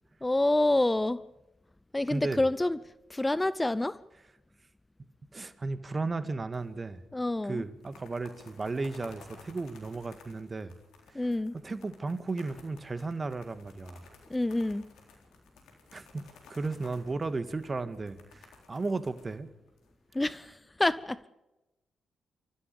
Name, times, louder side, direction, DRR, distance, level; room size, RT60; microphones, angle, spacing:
voice 1, 0.2-1.2 1.9-2.8 3.1-4.0 7.1-7.6 11.1-11.6 14.3-14.9 20.1-21.2, left 2 dB, 15° left, 17 dB, 0.7 m, -27 dB
voice 2, 2.1-2.4 5.3-7.0 7.4-10.7 11.1-11.3 11.5-14.1 15.9-19.5, right 3 dB, 35° right, 12 dB, 1.8 m, -35 dB
sound 1, 6.5-7.0 7.2-7.3 7.7-20.2, left 4 dB, 75° left, 3.9 m, -56 dB
29.5 x 14.0 x 7.0 m, 1.0 s
hypercardioid pair, 40°, 0 cm